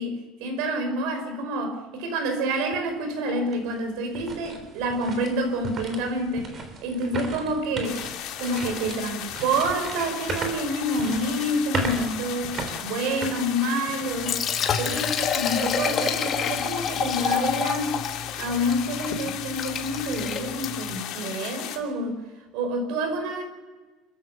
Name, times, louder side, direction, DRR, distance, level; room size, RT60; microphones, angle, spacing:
voice 1, 0.0-6.5 6.8-8.0 8.4-12.6 12.8-14.4 14.8-18.0 18.4-22.2 22.5-23.4, right 1 dB, 70° right, 6 dB, 5.3 m, -28 dB
sound 1, 2.7-2.8 3.3-14.2 14.6-14.8 15.4-15.7, right 3 dB, 30° right, 3.6 m, -36 dB
sound 2, 7.8-21.8, left 11 dB, 55° left, 2.5 m, -36 dB
Liquid, 14.1-21.0, left 7 dB, 35° left, 2.1 m, -28 dB
28.5 x 14.5 x 6.9 m, 1.3 s
cardioid pair, 160°, 0 cm